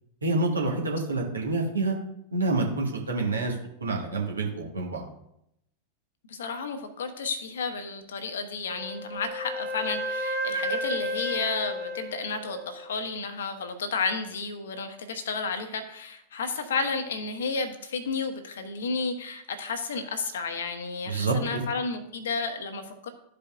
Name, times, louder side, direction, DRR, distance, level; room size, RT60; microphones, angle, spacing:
voice 1, 0.2-1.9 2.3-5.0 21.0-21.7, right 3 dB, 75° right, -1 dB, 1.5 m, -27 dB
voice 2, 6.3-23.1, left 4 dB, 65° left, 8 dB, 1.0 m, -32 dB
Wind instrument woodwind instrument, 8.7-12.9, equal, 50° right, 2.0 m, -32 dB
13.0 x 5.1 x 2.5 m, 0.78 s
figure-of-eight pair, 90°, 0 cm